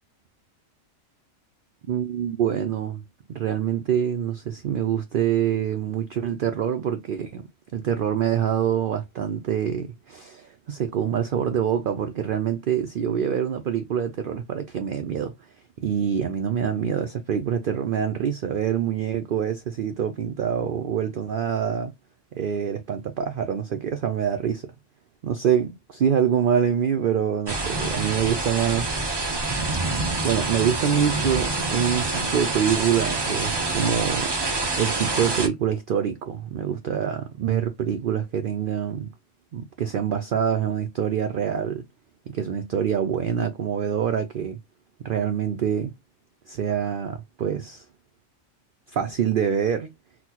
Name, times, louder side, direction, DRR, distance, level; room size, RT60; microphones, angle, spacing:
voice 1, 1.8-3.0 3.3-15.3 15.8-21.9 22.3-24.7 25.2-29.1 30.2-34.3 34.8-39.1 39.5-41.8 42.3-44.6 45.0-45.9 46.5-47.8 48.9-49.9, right 8 dB, 75° right, 0.5 m, -25 dB
sound 1, 27.5-35.5, right 3 dB, 25° right, 0.5 m, -26 dB
4.0 x 2.2 x 2.8 m
omnidirectional pair, 1.4 m